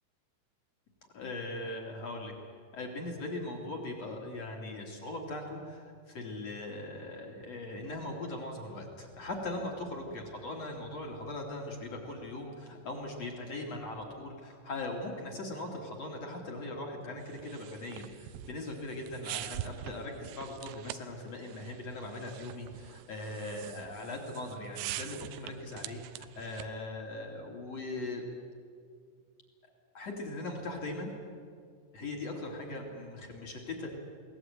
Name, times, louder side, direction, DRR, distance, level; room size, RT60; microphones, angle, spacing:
voice 1, 1.1-2.3 2.7-28.2 29.9-31.1 31.9-33.9, left 2 dB, 40° left, 1 dB, 3.0 m, -40 dB
sound 1, 17.2-26.8, right 14 dB, 85° right, 2.5 m, -44 dB
22.5 x 17.5 x 9.0 m, 2.2 s
omnidirectional pair, 5.7 m